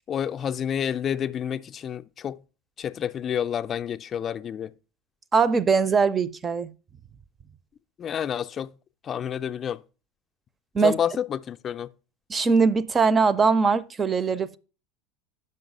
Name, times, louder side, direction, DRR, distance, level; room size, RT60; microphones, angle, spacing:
voice 1, 0.1-2.4 2.8-4.7 8.0-8.7 9.0-9.8 10.8-11.9, left 9 dB, 35° left, 0.4 m, -29 dB
voice 2, 5.3-6.7 10.7-11.0 12.3-14.6, right 5 dB, 25° right, 0.5 m, -21 dB
5.5 x 5.5 x 5.3 m
hypercardioid pair, 95°, 0 cm